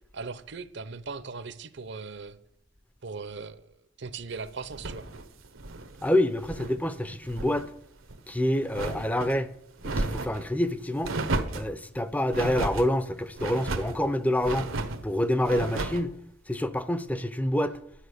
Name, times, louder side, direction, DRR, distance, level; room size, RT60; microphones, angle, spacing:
voice 1, 0.1-2.4 3.0-5.1, right 4 dB, 60° right, 0.7 m, -39 dB
sound 1, 4.7-6.8 7.1-7.7 8.0-9.3 9.8-10.5 11.0-11.7 12.3-12.9 13.4-14.0 14.4-15.0 15.4-16.1, right 2 dB, 85° right, 1.1 m, -33 dB
voice 2, 6.0-7.7 8.3-9.5 9.8-11.2 11.5-14.7 15.0-16.2 16.5-17.8, left 1 dB, 10° left, 0.5 m, -27 dB
11.5 x 9.0 x 6.6 m
head